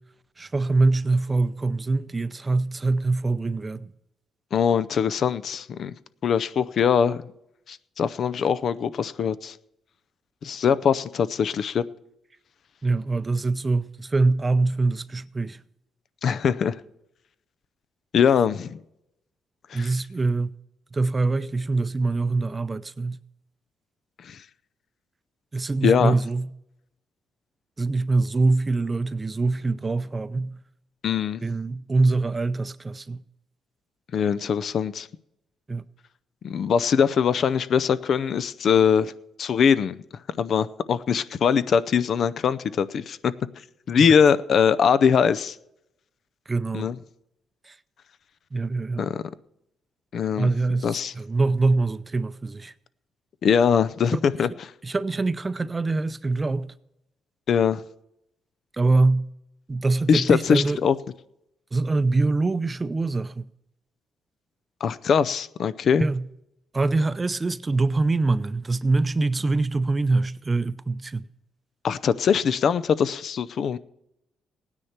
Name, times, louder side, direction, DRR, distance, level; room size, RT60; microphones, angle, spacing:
voice 1, 0.4-3.9 12.8-15.6 19.7-20.5 20.9-23.2 25.5-26.5 27.8-30.5 31.4-33.2 35.7-35.8 46.5-46.9 47.7-47.8 48.5-49.1 50.4-52.7 54.1-54.2 54.8-56.7 58.7-59.2 59.7-60.8 61.7-63.4 66.0-66.2 66.7-71.2, right 3 dB, 25° right, 0.6 m, -24 dB
voice 2, 4.5-5.9 6.2-7.2 7.7-9.6 10.4-11.8 16.2-16.8 18.1-18.8 19.7-19.9 24.2-24.4 25.8-26.2 31.0-31.4 34.1-35.1 36.4-39.1 39.4-40.0 40.4-43.3 43.9-45.6 46.7-47.0 49.0-49.2 50.1-50.5 50.8-51.1 53.4-54.7 57.5-57.8 60.1-61.0 64.8-66.1 71.8-73.8, left 7 dB, 60° left, 0.5 m, -22 dB
17.0 x 9.7 x 4.4 m
cardioid pair, 90°, 0 cm